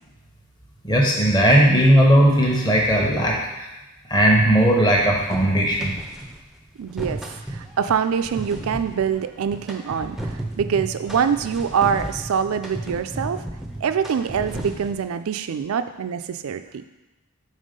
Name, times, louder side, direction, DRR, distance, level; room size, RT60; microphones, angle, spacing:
voice 1, 0.8-3.7 4.1-5.9, right 1 dB, 20° left, -2 dB, 1.0 m, -17 dB
sound 1, 5.3-6.4 6.8-15.1, right 1 dB, ahead, 0.5 m, -34 dB
voice 2, 6.8-7.2 7.5-13.5 13.8-16.6, right 7 dB, 80° right, 10 dB, 0.4 m, -24 dB
5.4 x 3.5 x 5.2 m, 1.1 s
head